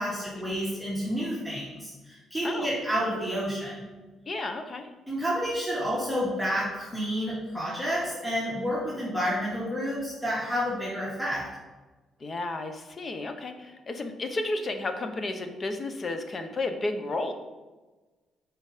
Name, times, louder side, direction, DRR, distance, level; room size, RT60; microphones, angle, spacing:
voice 1, 0.0-3.9 5.1-11.5, equal, 5° left, -7 dB, 2.2 m, -30 dB
voice 2, 4.3-4.9 12.2-17.3, left 2 dB, 40° left, 7 dB, 1.0 m, -32 dB
8.0 x 5.0 x 5.0 m, 1.2 s
cardioid pair, 90°, 0 cm